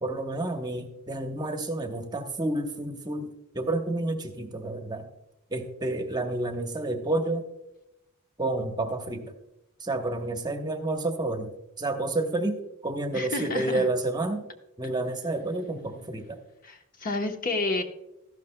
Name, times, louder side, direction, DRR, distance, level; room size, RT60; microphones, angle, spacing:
voice 1, 0.0-5.1 5.5-7.4 8.4-9.3 9.8-11.5 11.8-14.4 14.8-16.4, right 2 dB, 20° right, 5 dB, 1.0 m, -30 dB
voice 2, 13.1-13.9 16.6-17.8, left 2 dB, 40° left, 5 dB, 1.0 m, -30 dB
13.5 x 11.5 x 2.2 m, 0.88 s
head